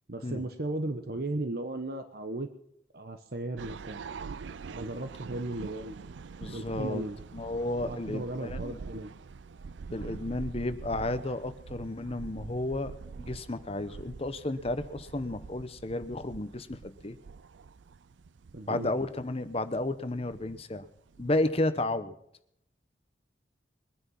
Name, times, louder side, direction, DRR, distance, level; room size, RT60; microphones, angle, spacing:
voice 1, 0.1-2.5 2.9-4.0 4.7-6.0 6.5-7.2 7.8-9.1 18.5-18.9, right 2 dB, 55° right, 8 dB, 1.1 m, -36 dB
sound 1, 3.6-21.5, right 5 dB, 85° right, 0.5 m, -45 dB
voice 2, 6.4-7.1 7.3-8.8 9.9-17.2 18.7-20.9 21.2-22.1, left 2 dB, 35° left, 11 dB, 0.9 m, -32 dB
22.0 x 9.7 x 5.6 m, 0.74 s
head